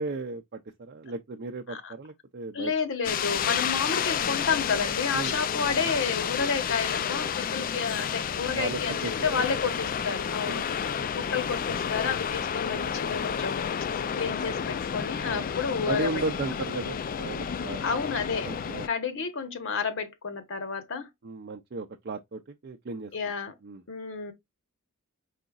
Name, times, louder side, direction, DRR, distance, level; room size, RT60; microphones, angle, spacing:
voice 1, 0.0-2.7 5.1-5.4 8.5-9.1 10.5-10.6 14.0-14.2 15.3-15.4 15.9-17.8 18.5-18.9 21.2-23.1 23.6-23.8, right 3 dB, 50° right, 0.5 m, -35 dB
voice 2, 2.5-10.7 11.1-13.6 14.2-16.2 16.6-16.8 17.8-18.5 18.8-21.1 23.1-23.5 23.9-24.3, left 5 dB, 60° left, 1.0 m, -30 dB
sound 1, 3.0-18.9, left 8 dB, 40° left, 0.3 m, -30 dB
4.9 x 3.9 x 2.3 m
head